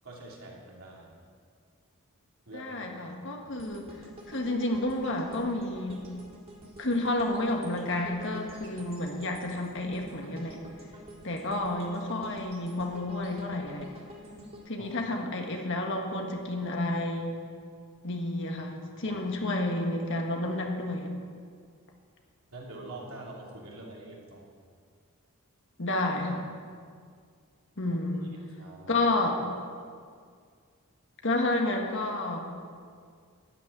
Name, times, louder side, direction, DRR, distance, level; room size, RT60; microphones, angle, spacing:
voice 1, 0.0-1.2 2.5-3.2 3.6-3.7 14.8-14.9 19.0-19.2 22.5-24.4 28.5-29.0, right 2 dB, 70° right, -3 dB, 2.9 m, -45 dB
voice 2, 2.5-3.8 4.3-6.0 6.8-10.6 11.2-13.9 14.7-17.3 18.0-21.1 25.8-26.5 27.8-28.3 28.9-29.4 31.2-32.4, left 2 dB, 55° left, 2 dB, 1.6 m, -30 dB
sound 1, 3.6-15.8 16.2-16.3, right 1 dB, 25° right, 1.9 m, -48 dB
13.0 x 6.4 x 9.6 m, 2.1 s
head